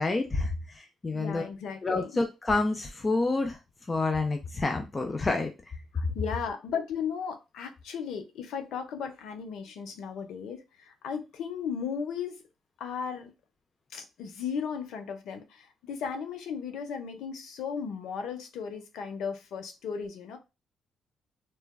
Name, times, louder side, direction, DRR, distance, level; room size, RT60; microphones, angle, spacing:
voice 1, 0.0-1.4 1.8-3.6 3.9-5.5, left 3 dB, 25° left, 5 dB, 0.5 m, -28 dB
voice 2, 1.1-2.1 5.9-12.4 12.8-13.3 13.9-20.4, left 6 dB, 80° left, 6 dB, 0.7 m, -36 dB
3.2 x 2.3 x 2.2 m, 0.25 s
cardioid pair, 90°, 0 cm